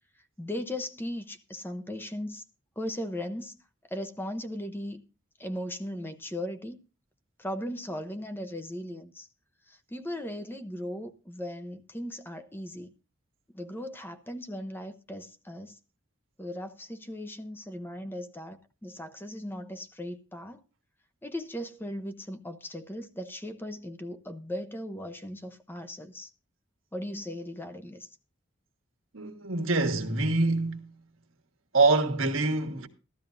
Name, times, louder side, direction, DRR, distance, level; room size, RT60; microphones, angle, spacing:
voice 1, 0.4-2.4 2.8-3.6 3.9-5.0 5.4-6.8 7.4-9.3 9.7-12.9 13.5-15.8 16.4-20.6 21.2-26.3 26.9-28.1, left 1 dB, 10° left, 0.7 m, -37 dB
voice 2, 29.1-30.9 31.7-32.9, right 3 dB, 85° right, 1.4 m, -25 dB
15.5 x 12.5 x 2.5 m
head